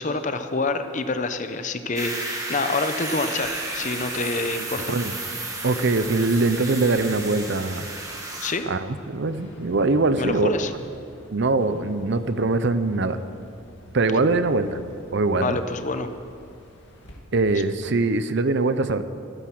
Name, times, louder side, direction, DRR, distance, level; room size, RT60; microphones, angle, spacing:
voice 1, 0.0-5.0 8.4-8.6 10.2-10.7 15.4-16.1, left 3 dB, 35° left, 8 dB, 0.8 m, -27 dB
sound 1, 2.0-8.5, right 2 dB, 15° right, 1.6 m, -32 dB
sound 2, 3.4-17.2, equal, 55° left, 2.3 m, -47 dB
voice 2, 5.6-7.9 8.7-10.5 11.3-13.2 13.9-14.8 15.1-15.6 17.3-19.0, right 3 dB, 55° right, 11 dB, 0.6 m, -22 dB
14.0 x 13.5 x 6.0 m, 2.5 s
head